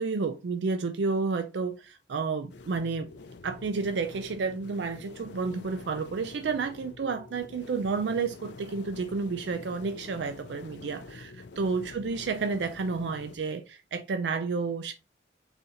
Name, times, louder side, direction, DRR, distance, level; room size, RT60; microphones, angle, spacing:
voice 1, 0.0-3.1 3.4-14.9, right 4 dB, 70° right, 0.4 m, -31 dB
sound 1, 2.5-13.4, left 3 dB, 70° left, 0.5 m, -47 dB
3.9 x 2.8 x 4.2 m
head